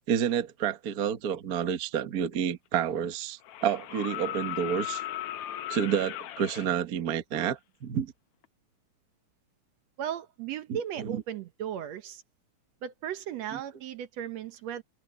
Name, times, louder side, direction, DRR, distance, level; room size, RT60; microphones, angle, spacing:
voice 1, 0.1-5.0 5.7-8.1 11.0-11.2 13.5-13.6, right 8 dB, 45° right, 1.2 m, -29 dB
sound 1, 2.3-2.4 3.4-6.7 8.4-8.5, left 13 dB, 70° left, 1.5 m, -37 dB
voice 2, 10.0-12.2 12.8-14.8, right 10 dB, 70° right, 2.1 m, -36 dB
omnidirectional pair, 3.4 m